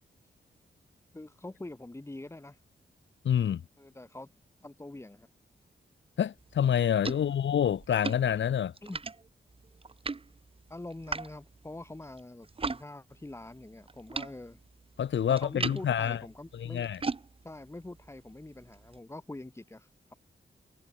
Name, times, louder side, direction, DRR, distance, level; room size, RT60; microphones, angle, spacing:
voice 1, 1.1-2.6 3.8-4.3 4.6-5.3 7.1-7.4 8.8-9.0 10.7-14.6 15.3-16.9 17.4-20.1, left 2 dB, 15° left, 1.8 m, -45 dB
voice 2, 3.2-3.6 6.2-8.7 15.0-16.2 16.5-17.0, left 9 dB, 80° left, 0.7 m, -27 dB
sound 1, 6.4-12.8 13.1-19.0, right 4 dB, 30° right, 1.0 m, -41 dB
wide cardioid pair, 130°, 19 cm